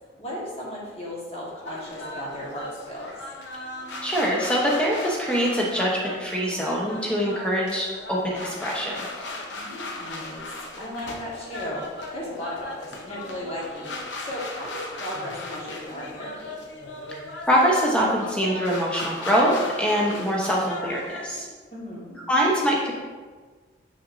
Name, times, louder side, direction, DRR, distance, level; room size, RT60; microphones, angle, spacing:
voice 1, 0.2-3.1 9.5-16.6 21.7-22.2, left 1 dB, 35° left, -6 dB, 1.5 m, -36 dB
sound 1, 1.6-21.4, left 2 dB, 85° left, 0.7 m, -37 dB
voice 2, 4.0-5.9 6.2-9.0 17.5-21.5 22.3-22.9, equal, 5° left, -4 dB, 1.0 m, -23 dB
6.2 x 5.9 x 2.7 m, 1.4 s
head